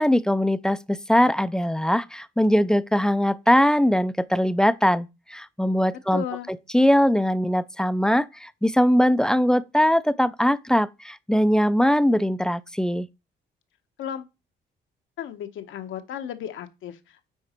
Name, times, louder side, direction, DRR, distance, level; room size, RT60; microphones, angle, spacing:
voice 1, 0.0-13.1, equal, 5° left, 0.4 m, -21 dB
voice 2, 6.1-6.5 14.0-14.3 15.2-17.3, left 9 dB, 80° left, 1.1 m, -34 dB
9.6 x 4.0 x 4.4 m
cardioid pair, 90°, 20 cm